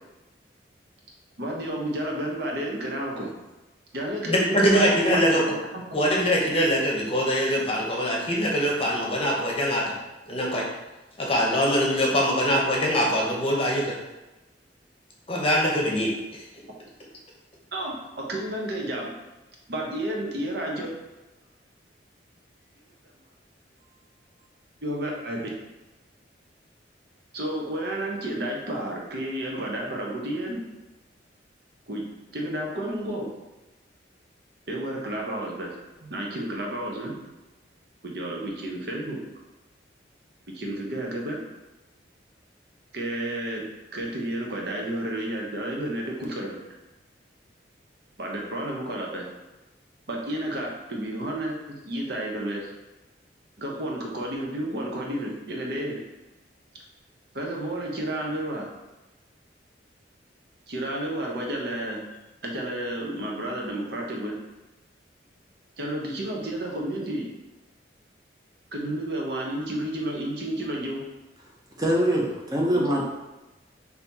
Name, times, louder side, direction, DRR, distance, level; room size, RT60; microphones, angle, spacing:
voice 1, 1.4-3.3 3.9-5.3 5.7-5.8 17.7-19.1 19.7-20.9 24.8-25.5 27.3-30.6 31.9-32.0 32.3-33.3 34.7-35.7 36.0-37.1 38.0-39.2 40.5-41.4 42.9-43.6 43.9-46.6 48.2-49.3 50.1-51.6 51.8-52.7 53.6-56.0 57.3-58.7 60.7-62.0 62.4-64.4 65.8-67.3 68.7-71.0 72.7-73.0, right 1 dB, 60° right, -1 dB, 0.9 m, -31 dB
voice 2, 4.3-5.4 5.9-9.9 10.3-10.7 11.2-14.0 15.3-16.1, equal, 30° left, -2 dB, 0.8 m, -23 dB
voice 3, 71.8-73.0, equal, 20° right, -2 dB, 0.8 m, -23 dB
4.1 x 2.8 x 4.1 m, 1.1 s
head